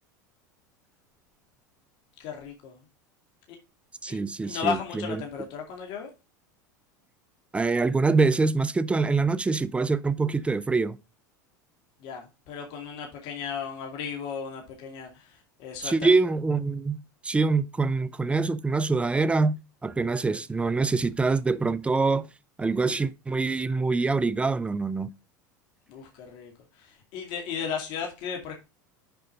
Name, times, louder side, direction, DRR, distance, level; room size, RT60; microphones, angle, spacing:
voice 1, 2.2-2.8 3.5-3.6 4.1-4.2 4.4-6.1 12.0-16.1 25.9-28.5, left 7 dB, 60° left, 2.3 m, -35 dB
voice 2, 4.0-4.8 7.5-11.0 15.8-22.3 22.6-25.1, right 3 dB, 10° right, 0.6 m, -25 dB
6.9 x 5.0 x 5.4 m
hypercardioid pair, 95°, 10 cm